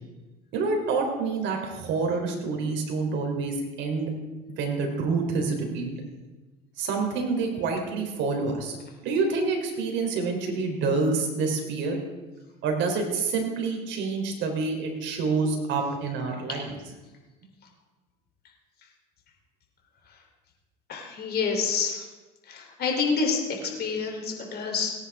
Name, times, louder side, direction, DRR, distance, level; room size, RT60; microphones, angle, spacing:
voice 1, 0.5-4.1 4.6-6.0 6.8-8.8 9.0-12.0 12.6-16.7, right 4 dB, 65° right, 3 dB, 3.4 m, -27 dB
voice 2, 20.9-22.0 22.5-24.9, left 5 dB, 50° left, 1 dB, 3.3 m, -28 dB
18.0 x 9.9 x 3.5 m, 1.2 s
supercardioid pair, 80°, 21 cm